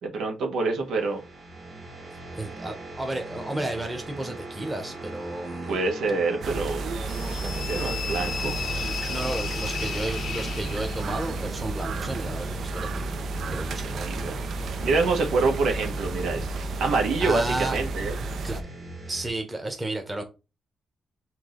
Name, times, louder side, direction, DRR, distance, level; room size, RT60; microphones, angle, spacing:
voice 1, 0.0-1.2 5.7-6.8 7.3-8.6 14.0-14.3 14.8-18.1, right 3 dB, 85° right, 1.3 m, -26 dB
sound 1, 0.8-19.3, right 2 dB, 35° right, 1.9 m, -40 dB
voice 2, 2.3-5.8 8.8-12.9 13.5-14.4 17.2-17.8 18.4-18.6 19.1-20.2, right 2 dB, 15° right, 1.1 m, -32 dB
sound 2, 6.4-18.6, right 3 dB, 65° right, 0.6 m, -32 dB
sound 3, 7.1-11.3, left 7 dB, 65° left, 0.5 m, -34 dB
4.7 x 2.8 x 3.8 m
cardioid pair, 110°, 0 cm